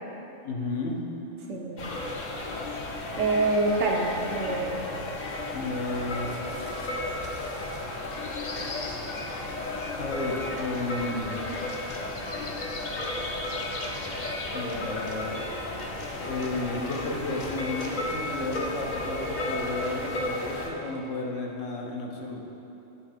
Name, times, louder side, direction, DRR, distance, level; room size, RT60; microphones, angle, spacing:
voice 1, 0.4-1.0 5.5-6.3 9.9-11.5 14.5-15.5 16.2-22.5, left 3 dB, 75° left, 0 dB, 1.2 m, -33 dB
voice 2, 1.5-1.9 3.2-4.8, right 2 dB, 70° right, 0 dB, 0.9 m, -26 dB
sound 1, 1.8-20.7, left 2 dB, 45° left, 0.7 m, -33 dB
9.5 x 3.5 x 5.0 m, 3.0 s
omnidirectional pair, 1.3 m